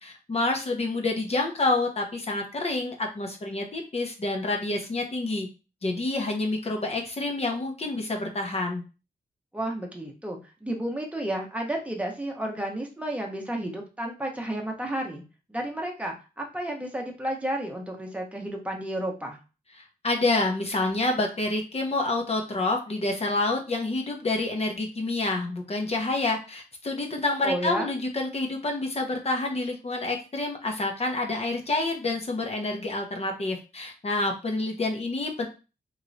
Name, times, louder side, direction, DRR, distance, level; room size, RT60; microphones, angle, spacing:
voice 1, 0.0-5.5 5.8-8.8 20.0-35.5, left 2 dB, 40° left, 2 dB, 0.8 m, -28 dB
voice 2, 9.5-15.2 15.5-19.4 27.4-27.9, right 1 dB, 10° right, 1 dB, 0.8 m, -32 dB
3.1 x 2.9 x 2.5 m, 0.32 s
wide cardioid pair, 90°, 16 cm